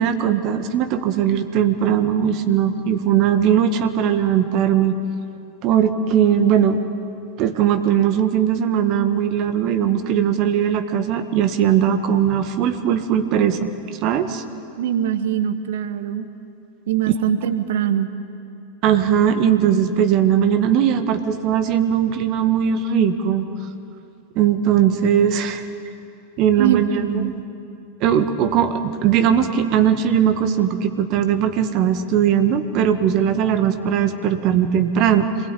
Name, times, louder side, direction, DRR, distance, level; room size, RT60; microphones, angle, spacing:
voice 1, 0.0-4.9 5.6-6.8 7.4-13.7 14.0-14.4 18.8-23.5 24.4-25.6 26.4-27.4 28.0-35.3, right 9 dB, 40° right, 8 dB, 1.9 m, -19 dB
voice 2, 14.8-16.3 16.9-18.1 26.6-27.3, right 10 dB, 55° right, 10 dB, 1.5 m, -22 dB
26.5 x 20.5 x 9.0 m, 2.6 s
figure-of-eight pair, 90°, 0 cm